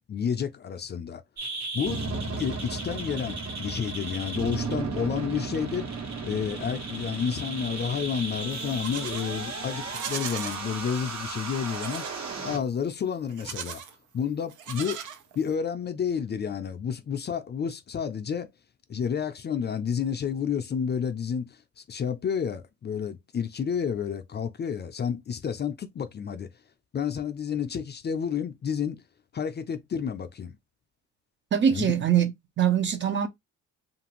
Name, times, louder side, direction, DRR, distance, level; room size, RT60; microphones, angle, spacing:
voice 1, 0.1-1.2 1.7-2.0 2.4-5.9 6.2-12.1 12.4-13.8 14.1-15.0 15.4-18.5 18.9-26.5 26.9-29.0 29.3-30.5 31.7-32.0, left 7 dB, 35° left, 0.4 m, -30 dB
sound 1, 1.4-12.6, right 3 dB, 65° right, 1.2 m, -34 dB
Livestock farm animals working animals, 8.5-9.3 9.8-10.6 11.7-12.2 13.3-13.9 14.5-15.6, right 8 dB, 80° right, 0.6 m, -38 dB
voice 2, 31.5-33.3, right 8 dB, 40° right, 0.6 m, -23 dB
2.8 x 2.5 x 2.9 m
cardioid pair, 90°, 30 cm